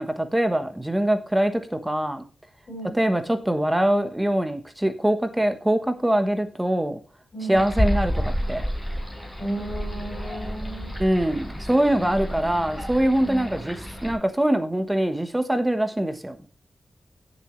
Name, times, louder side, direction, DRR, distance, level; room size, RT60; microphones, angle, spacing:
voice 1, 0.0-2.2 2.9-7.0 7.5-8.1 8.5-8.6 11.0-16.4, right 1 dB, 10° right, 9 dB, 1.2 m, -23 dB
voice 2, 7.3-7.8 9.4-10.9 12.0-12.5 13.2-13.5, right 1 dB, 45° left, 1 dB, 6.2 m, -34 dB
sound 1, 7.5-14.1, equal, 10° left, 4.9 m, -30 dB
17.5 x 7.2 x 3.1 m, 0.33 s
wide cardioid pair, 160°, 0 cm